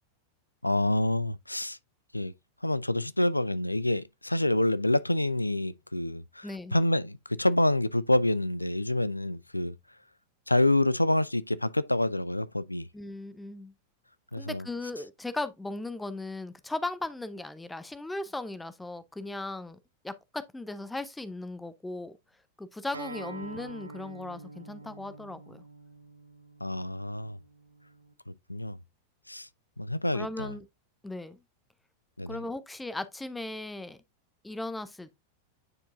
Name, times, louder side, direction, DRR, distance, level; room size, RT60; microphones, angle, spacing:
voice 1, 0.6-1.8 2.1-2.3 2.6-9.8 10.5-12.9 14.3-14.7 26.6-27.4 28.5-28.8 29.3-29.5 29.8-30.5 32.2-32.4, left 1 dB, 85° left, 0.3 m, -27 dB
voice 2, 6.4-6.8 12.9-13.7 14.4-19.8 20.0-22.2 22.6-25.6 30.1-30.6 31.0-31.4 32.3-34.0 34.4-35.1, left 2 dB, 5° left, 0.5 m, -37 dB
Acoustic guitar, 22.9-28.1, right 2 dB, 80° right, 0.6 m, -46 dB
9.6 x 4.6 x 2.4 m
figure-of-eight pair, 90°, 0 cm